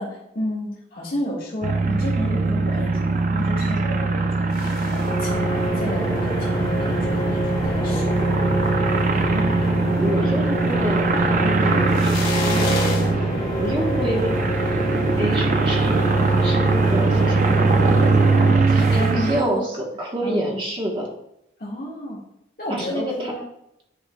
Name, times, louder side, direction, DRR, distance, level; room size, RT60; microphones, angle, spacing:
voice 1, 0.0-8.1 18.6-19.6 20.2-20.4 21.6-22.2 22.6-23.5, left 1 dB, 50° left, -5 dB, 1.8 m, -31 dB
sound 1, 1.6-19.4, right 3 dB, 45° right, 0.5 m, -21 dB
sound 2, 4.5-19.1, equal, 30° left, 1.4 m, -27 dB
voice 2, 9.9-11.1 11.4-13.1 13.6-14.3 15.2-18.0 18.7-19.7 20.0-21.1 22.7-23.3, right 1 dB, 25° right, -1 dB, 1.3 m, -28 dB
10.0 x 4.4 x 2.3 m, 0.81 s
head